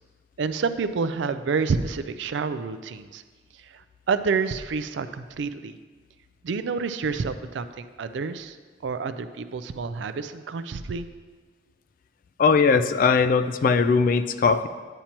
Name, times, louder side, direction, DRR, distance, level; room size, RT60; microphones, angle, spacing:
voice 1, 0.4-3.2 3.5-5.8 6.4-8.6 8.8-11.1, right 5 dB, 70° right, 11 dB, 0.4 m, -28 dB
voice 2, 12.4-14.7, left 5 dB, 45° left, 11 dB, 0.3 m, -20 dB
8.9 x 8.4 x 2.9 m, 1.5 s
head